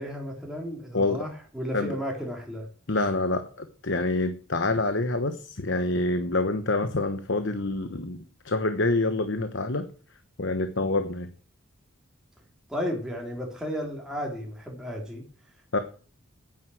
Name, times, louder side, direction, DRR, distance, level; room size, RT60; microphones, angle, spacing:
voice 1, 0.0-2.7 12.7-15.2, equal, 5° right, -1 dB, 3.4 m, -33 dB
voice 2, 2.9-9.9 10.4-11.3 15.7-15.8, left 2 dB, 60° left, 9 dB, 1.1 m, -27 dB
9.6 x 9.4 x 7.9 m, 0.41 s
head